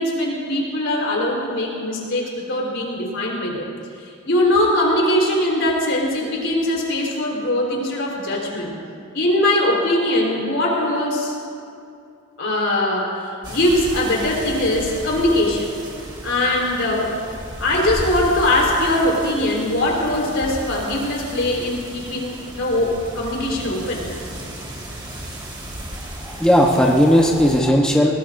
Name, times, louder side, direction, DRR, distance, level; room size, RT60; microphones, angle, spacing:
voice 1, 0.0-3.7 4.0-8.7 9.1-11.4 12.4-15.7 16.2-17.2 17.6-24.0, left 1 dB, 60° left, -2 dB, 4.0 m, -21 dB
sound 1, 13.4-27.6, right 1 dB, 20° right, 1.9 m, -35 dB
voice 2, 26.2-28.2, equal, 5° left, -2 dB, 0.9 m, -16 dB
22.5 x 19.5 x 2.6 m, 2.5 s
head